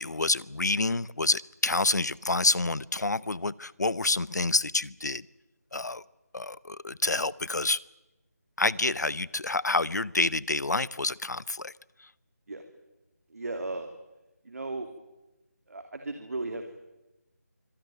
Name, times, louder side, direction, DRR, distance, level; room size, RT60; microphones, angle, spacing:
voice 1, 0.0-5.2 5.7-6.0 6.3-7.8 8.6-11.7, left 3 dB, 85° left, 21 dB, 0.8 m, -28 dB
voice 2, 13.3-13.9 14.4-14.9 15.7-16.9, right 2 dB, 60° right, 6 dB, 2.9 m, -36 dB
25.5 x 18.0 x 9.3 m, 0.98 s
figure-of-eight pair, 170°, 9 cm